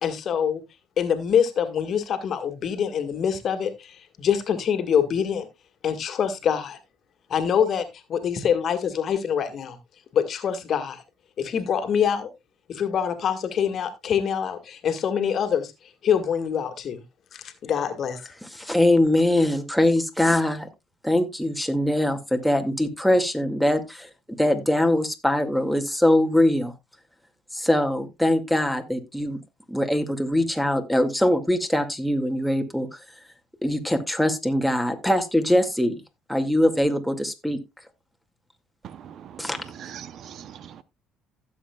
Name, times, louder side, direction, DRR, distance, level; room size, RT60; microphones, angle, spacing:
voice 1, 0.0-0.6 1.0-5.5 5.8-6.8 7.3-9.8 10.1-11.0 11.4-12.3 12.7-15.7 16.0-17.0 17.3-18.3, left 8 dB, 55° left, 1.8 m, -25 dB
voice 2, 18.5-20.7 21.0-24.1 24.4-26.7 27.5-29.4 29.7-32.9 33.6-36.0 36.3-37.6 39.4-39.6, left 1 dB, ahead, 2.1 m, -22 dB
voice 3, 39.0-39.5 39.8-40.8, right 9 dB, 60° right, 0.7 m, -42 dB
15.5 x 7.6 x 2.3 m
hypercardioid pair, 65°, 0 cm